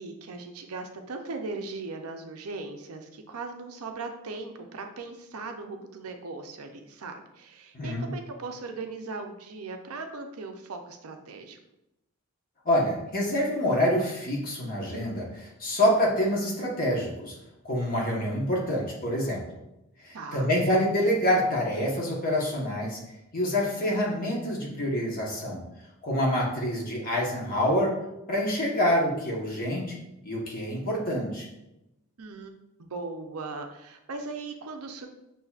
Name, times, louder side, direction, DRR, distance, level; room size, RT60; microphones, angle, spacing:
voice 1, 0.0-11.6 20.1-20.5 32.2-32.5 32.8-35.1, right 3 dB, 75° right, 5 dB, 0.6 m, -38 dB
voice 2, 7.7-8.1 12.6-17.3 17.6-19.4 20.0-23.0 23.3-25.6 26.0-27.9 28.3-30.0 30.2-31.5, equal, 40° left, -3 dB, 1.1 m, -26 dB
6.4 x 2.7 x 2.4 m, 0.88 s
head